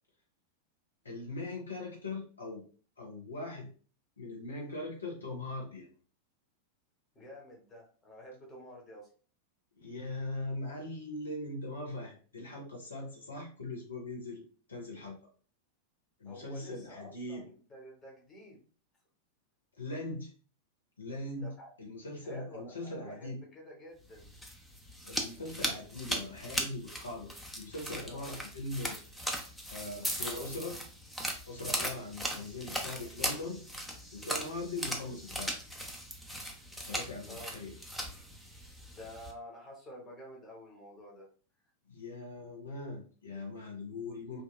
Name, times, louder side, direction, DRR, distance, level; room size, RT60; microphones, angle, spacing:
voice 1, 1.0-2.6 3.0-3.7 4.2-5.9 9.8-14.4 14.7-15.2 16.2-17.5 19.8-20.3 21.0-21.5 21.8-23.4 25.0-29.0 29.7-30.8 31.5-33.6 34.1-35.5 36.8-37.8 41.9-44.4, left 2 dB, 75° left, -1 dB, 0.7 m, -40 dB
voice 2, 7.1-9.1 16.2-18.7 21.4-21.7 22.2-24.3 28.1-28.2 30.2-30.5 37.3-37.5 38.9-41.3, equal, 20° left, -1 dB, 0.9 m, -49 dB
sound 1, 24.1-39.3, equal, 5° left, 0.5 m, -38 dB
2.9 x 2.2 x 2.3 m, 0.40 s
figure-of-eight pair, 90°, 0 cm